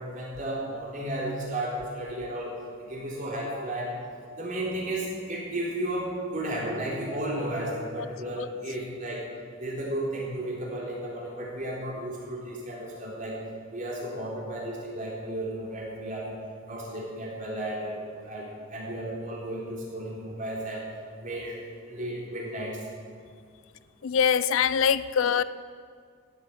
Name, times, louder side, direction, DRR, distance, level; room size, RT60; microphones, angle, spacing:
voice 1, 0.0-2.5 2.8-4.0 4.4-9.2 9.6-13.4 13.7-16.3 16.6-20.9 21.2-21.6 21.9-22.8, right 1 dB, 35° right, -4 dB, 3.8 m, -33 dB
voice 2, 24.0-25.4, left 7 dB, 60° left, 15 dB, 0.4 m, -23 dB
16.0 x 8.0 x 8.1 m, 2.1 s
head